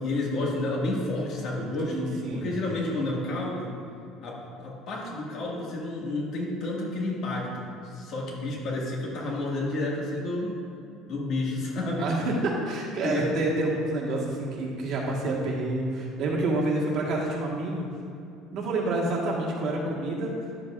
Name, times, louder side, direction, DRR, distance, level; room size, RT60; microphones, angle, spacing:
voice 1, 0.0-3.7 4.2-10.5 11.1-12.1 13.0-13.3, left 2 dB, 55° left, -3 dB, 1.9 m, -30 dB
voice 2, 1.9-2.4 12.0-17.8 18.5-20.3, right 2 dB, 55° right, -3 dB, 1.6 m, -28 dB
11.0 x 7.7 x 2.5 m, 2.5 s
cardioid pair, 130°, 0 cm